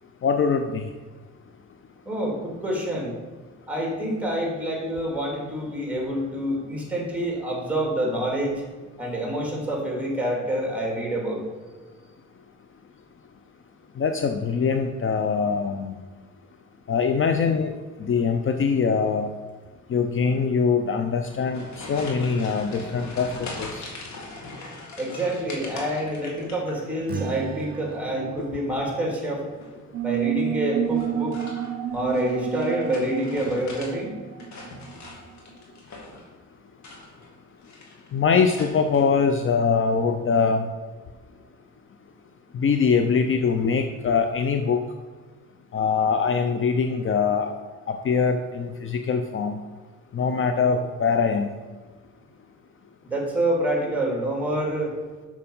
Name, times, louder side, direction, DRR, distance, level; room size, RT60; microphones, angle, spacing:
voice 1, 0.2-0.9 14.0-16.0 16.9-17.7 18.0-19.3 19.9-23.9 38.1-40.7 42.5-44.8 45.7-47.5 47.9-49.6 50.1-51.5, left 5 dB, 45° left, 6 dB, 0.6 m, -23 dB
voice 2, 2.0-3.1 3.7-8.5 9.0-11.4 25.0-29.4 30.0-31.4 31.9-34.2 53.0-54.9, right 1 dB, 5° right, -1 dB, 2.8 m, -27 dB
sound 1, 21.2-27.2 27.5-28.1 29.5-29.9 30.9-33.9 34.3-36.3 36.7-37.4 37.6-38.1 38.6-39.0, left 2 dB, 65° left, 2.2 m, -41 dB
Strum, 27.0-31.5, right 5 dB, 30° right, 0.5 m, -38 dB
sound 2, 29.9-35.1, right 10 dB, 60° right, 0.9 m, -29 dB
6.8 x 6.1 x 5.5 m, 1.3 s
cardioid pair, 90°, 30 cm